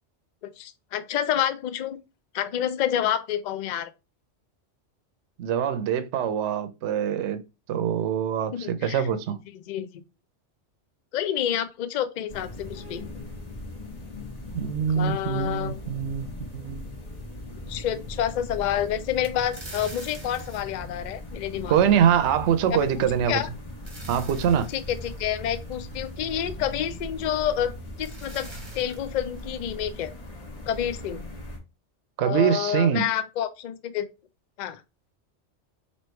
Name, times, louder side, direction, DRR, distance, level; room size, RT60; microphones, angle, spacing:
voice 1, 0.6-2.0 2.3-3.9 8.5-9.0 9.7-9.9 11.1-13.0 14.9-15.8 17.7-22.0 23.3-23.5 24.7-27.7 28.0-28.5 28.7-30.1 30.7-31.2 32.2-34.1 34.6-34.8, left 10 dB, 60° left, 0.5 m, -28 dB
voice 2, 5.4-7.4 7.7-9.4 14.5-16.9 21.7-23.4 24.1-24.7 32.2-33.1, right 8 dB, 75° right, 0.9 m, -24 dB
sound 1, 12.3-31.6, left 1 dB, 35° left, 1.0 m, -39 dB
sound 2, 19.2-21.9 23.4-26.5 27.6-27.7 28.0-29.8, right 2 dB, 25° right, 0.9 m, -46 dB
3.1 x 2.9 x 4.3 m
omnidirectional pair, 1.2 m